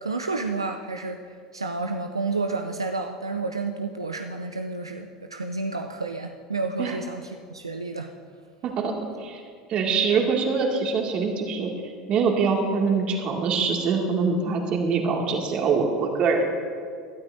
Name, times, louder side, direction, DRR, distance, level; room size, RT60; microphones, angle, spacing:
voice 1, 0.0-8.1, right 3 dB, 90° right, 4 dB, 0.5 m, -30 dB
voice 2, 8.6-9.4 9.7-11.7 12.1-16.5, right 5 dB, 45° right, 1 dB, 2.3 m, -24 dB
21.0 x 12.5 x 2.7 m, 2.1 s
figure-of-eight pair, 75°, 3 cm